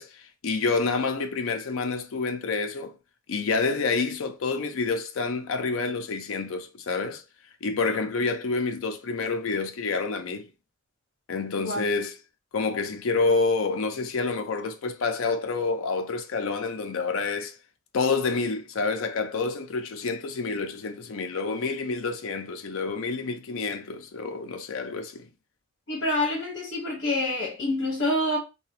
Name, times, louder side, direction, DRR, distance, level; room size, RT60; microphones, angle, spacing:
voice 1, 0.0-3.0 3.3-7.2 7.6-10.5 11.3-12.2 12.5-17.6 17.9-25.3, left 4 dB, 90° left, 0.5 m, -28 dB
voice 2, 25.9-28.4, left 1 dB, 55° left, 1.0 m, -27 dB
2.8 x 2.2 x 3.0 m
head